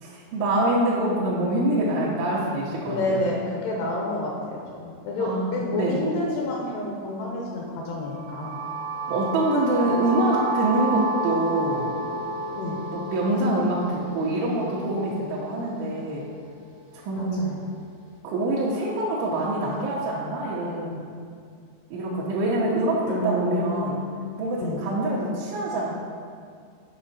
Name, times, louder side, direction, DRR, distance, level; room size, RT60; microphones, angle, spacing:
voice 1, 0.0-3.2 5.2-6.0 9.1-11.9 12.9-16.2 16.9-17.4 18.2-21.1 21.9-24.0 24.4-25.9, right 1 dB, 80° right, -7 dB, 3.3 m, -25 dB
voice 2, 2.9-8.6 12.5-12.8 17.1-17.6 23.1-23.8 24.6-24.8, left 2 dB, 80° left, -2 dB, 2.5 m, -29 dB
sound 1, 8.0-16.0, right 2 dB, 60° right, 1.5 m, -31 dB
10.0 x 5.6 x 4.2 m, 2.2 s
omnidirectional pair, 5.4 m